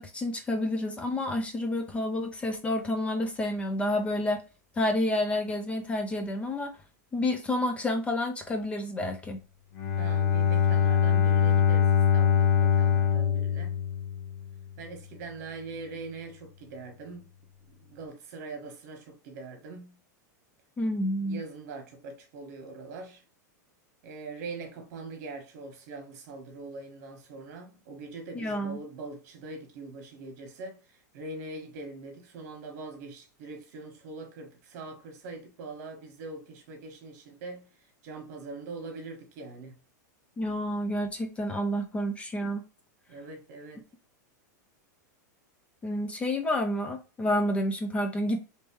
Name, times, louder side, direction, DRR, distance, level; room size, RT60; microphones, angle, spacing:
voice 1, 0.0-4.4 4.8-6.7 7.1-9.4 20.8-21.4 28.3-28.8 40.4-42.6 45.8-48.4, left 1 dB, 10° left, 0.4 m, -29 dB
Bowed string instrument, 9.7-14.5, left 8 dB, 75° left, 1.0 m, -23 dB
voice 2, 10.0-13.8 14.8-17.3 17.7-19.9 21.2-23.2 24.0-30.8 31.1-37.7 38.0-39.8 43.1-43.8, right 3 dB, 55° right, 1.3 m, -42 dB
3.1 x 3.0 x 3.1 m
supercardioid pair, 150°, 10 cm